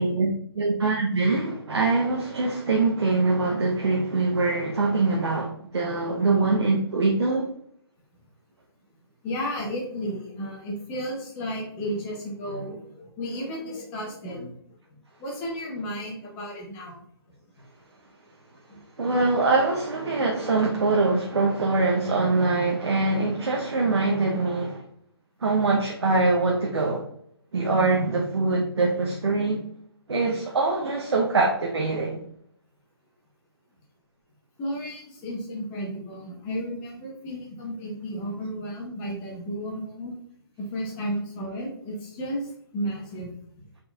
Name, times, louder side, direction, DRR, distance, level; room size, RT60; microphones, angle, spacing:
voice 1, 0.0-7.5 19.0-24.8 25.4-27.0 27.5-29.6 30.1-32.2, right 3 dB, 85° right, 0.7 m, -23 dB
voice 2, 9.2-14.5 15.2-16.9 18.7-18.8 34.6-40.1 40.7-42.4 42.7-43.3, equal, 15° left, 0.9 m, -33 dB
4.1 x 3.8 x 2.3 m
hypercardioid pair, 155°, 14 cm